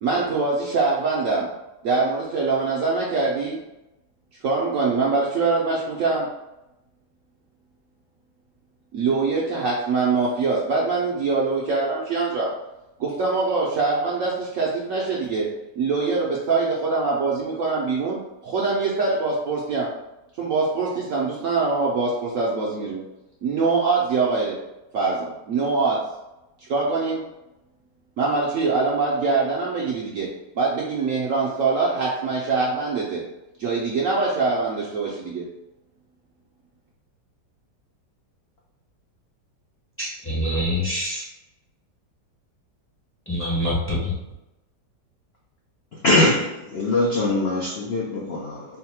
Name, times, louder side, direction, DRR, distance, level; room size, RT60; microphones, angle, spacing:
voice 1, 0.0-1.5 1.8-3.6 4.4-6.3 8.9-12.5 13.0-15.5 15.8-18.2 18.4-19.9 20.4-23.0 23.4-24.6 24.9-26.0 26.7-27.2 28.2-30.3 30.5-33.2 33.6-35.4, right 4 dB, 70° right, -4 dB, 0.8 m, -23 dB
voice 2, 40.0-41.2 43.3-44.1, left 1 dB, 15° left, -7 dB, 0.5 m, -25 dB
voice 3, 45.9-48.7, left 2 dB, 85° left, -4 dB, 0.5 m, -22 dB
3.9 x 2.1 x 4.3 m, 0.94 s
omnidirectional pair, 1.9 m